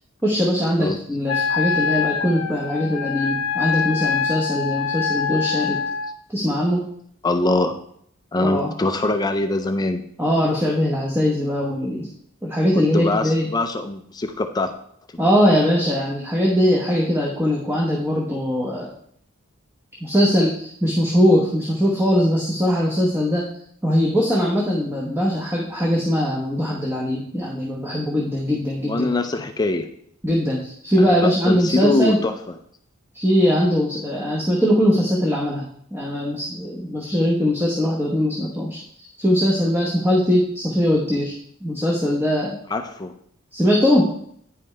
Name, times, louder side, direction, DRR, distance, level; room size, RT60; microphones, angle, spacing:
voice 1, 0.2-5.8 6.3-6.8 8.4-8.7 10.2-12.1 12.4-13.5 15.2-18.9 20.0-23.5 23.8-29.1 30.2-32.2 33.1-35.7 35.9-41.3 41.6-42.6 43.5-44.1, equal, 10° right, -3 dB, 0.9 m, -21 dB
Wind instrument woodwind instrument, 1.3-6.1, left 6 dB, 80° left, 0.5 m, -24 dB
voice 2, 7.2-7.8 8.3-10.0 12.9-14.7 28.8-29.9 31.0-32.3 42.7-43.1, left 2 dB, 20° left, 7 dB, 0.4 m, -23 dB
9.4 x 5.2 x 3.2 m, 0.66 s
head